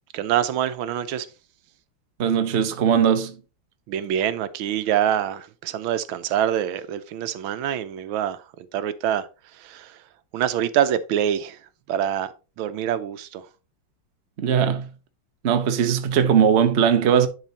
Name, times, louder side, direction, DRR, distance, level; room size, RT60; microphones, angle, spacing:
voice 1, 0.1-1.3 3.9-10.0 10.3-11.6 11.9-13.5, right 10 dB, 85° right, 1.5 m, -25 dB
voice 2, 2.2-3.4 14.4-14.9 15.4-17.3, right 8 dB, 45° right, 0.9 m, -19 dB
10.5 x 4.1 x 4.1 m
omnidirectional pair, 2.1 m